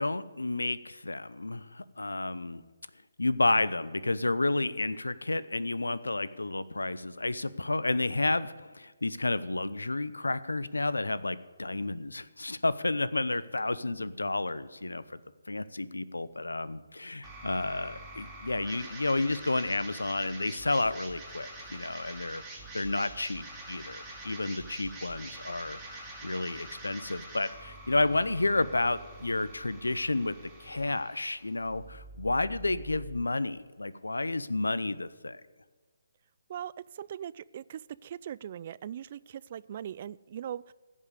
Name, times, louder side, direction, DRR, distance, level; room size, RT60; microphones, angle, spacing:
voice 1, 0.0-2.6 3.2-15.2 15.5-22.4 22.7-30.3 30.6-35.4, left 2 dB, 85° left, 16 dB, 0.7 m, -31 dB
sound 1, 17.2-33.2, right 2 dB, 10° right, 2.4 m, -46 dB
voice 2, 36.5-40.7, right 10 dB, 40° right, 20 dB, 0.3 m, -40 dB
15.5 x 5.5 x 8.2 m, 1.4 s
figure-of-eight pair, 145°, 0 cm